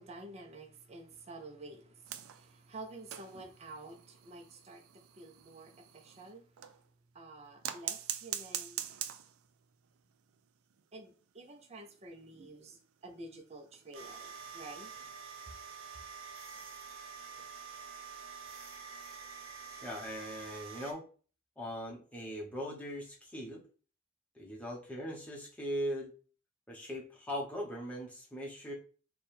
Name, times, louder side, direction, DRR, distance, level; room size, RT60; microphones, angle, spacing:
voice 1, 0.0-6.7 7.1-8.8 10.9-14.9 15.5-15.6, right 2 dB, 30° right, 0.5 m, -50 dB
sound 1, 2.1-6.9 7.6-9.5 9.8-10.0 10.3-10.4 10.7-10.8 11.4-14.5 14.9-15.2 16.3-16.4, right 11 dB, 90° right, 0.4 m, -44 dB
sound 2, 13.9-20.9, right 6 dB, 70° right, 0.8 m, -47 dB
voice 2, 19.8-21.0 21.6-23.6 24.3-26.1 26.7-28.7, equal, 5° left, 0.8 m, -40 dB
3.4 x 2.2 x 4.3 m
head